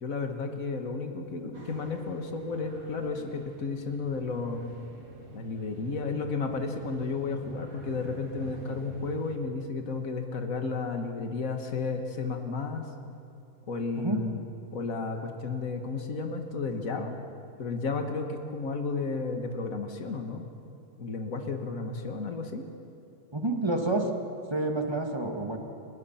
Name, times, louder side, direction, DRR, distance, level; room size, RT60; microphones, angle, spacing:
voice 1, 0.0-4.8 5.3-12.9 13.7-14.4 14.7-17.2 17.6-20.4 21.0-22.6, left 4 dB, 75° left, 4 dB, 2.0 m, -33 dB
sound 1, 1.5-9.4, right 3 dB, 80° right, 3.0 m, -47 dB
voice 2, 23.3-24.1 24.5-25.6, right 2 dB, 20° right, 3 dB, 2.1 m, -28 dB
29.5 x 21.5 x 5.8 m, 2.6 s
omnidirectional pair, 1.5 m